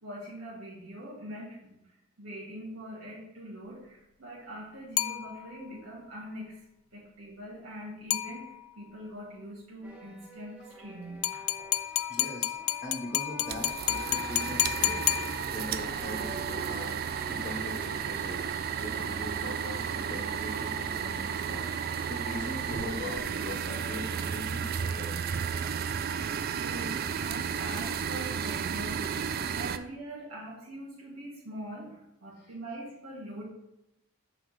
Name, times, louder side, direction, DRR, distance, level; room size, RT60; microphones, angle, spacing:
voice 1, 0.0-1.8 2.2-6.6 6.9-11.7 26.5-33.4, right 1 dB, 80° right, -7 dB, 1.8 m, -43 dB
sound 1, 5.0-5.8 8.1-8.9 11.2-15.9, left 14 dB, 75° left, 0.3 m, -31 dB
sound 2, 9.8-24.3, right 1 dB, 5° right, 0.8 m, -51 dB
voice 2, 12.1-15.1 15.5-16.9 17.3-18.4 18.8-25.2, left 1 dB, 35° left, -2 dB, 1.1 m, -41 dB
sound 3, 13.5-29.8, right 7 dB, 45° right, 0.3 m, -33 dB
7.8 x 4.8 x 3.2 m, 0.87 s
head